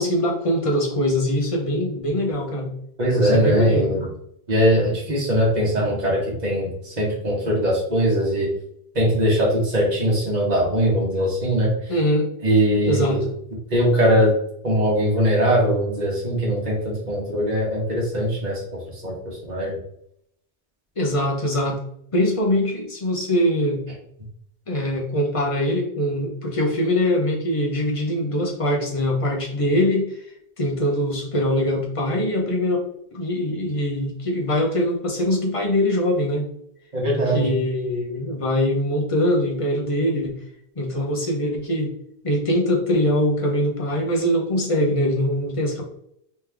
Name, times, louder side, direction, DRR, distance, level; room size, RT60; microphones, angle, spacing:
voice 1, 0.0-2.7 3.2-3.9 11.9-12.3 12.8-13.2 21.0-21.8 22.1-23.8 24.7-30.1 30.6-32.8 33.1-36.5 37.3-40.4 40.8-41.9 42.2-45.8, left 1 dB, 30° left, -1 dB, 0.9 m, -22 dB
voice 2, 3.0-4.1 4.5-8.5 8.9-11.7 12.4-13.2 13.7-14.3 14.6-19.8 36.9-37.5, equal, 40° right, -4 dB, 1.5 m, -21 dB
3.4 x 3.2 x 3.4 m, 0.71 s
omnidirectional pair, 1.1 m